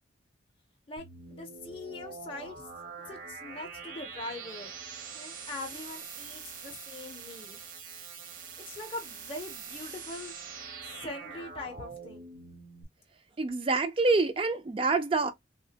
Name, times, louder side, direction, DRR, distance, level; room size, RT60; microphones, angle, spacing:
voice 1, 0.9-2.7 3.0-4.7 5.1-7.6 8.7-10.3 10.8-12.2, left 2 dB, 30° left, 0.5 m, -42 dB
sound 1, 1.0-12.8, right 5 dB, 45° right, 0.7 m, -44 dB
voice 2, 13.4-15.3, right 3 dB, 30° right, 0.4 m, -26 dB
3.4 x 2.1 x 2.7 m
head